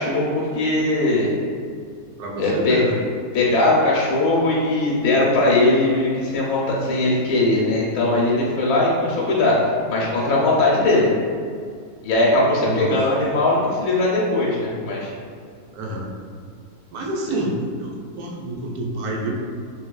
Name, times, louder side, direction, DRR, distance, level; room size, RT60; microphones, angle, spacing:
voice 1, 0.0-1.3 2.4-2.8 3.3-11.1 12.0-15.1, left 2 dB, 80° left, -4 dB, 1.1 m, -19 dB
voice 2, 2.2-2.9 12.6-12.9 15.7-16.1 16.9-19.3, right 1 dB, 75° right, -1 dB, 1.1 m, -28 dB
3.8 x 2.8 x 2.2 m, 2.1 s
omnidirectional pair, 1.6 m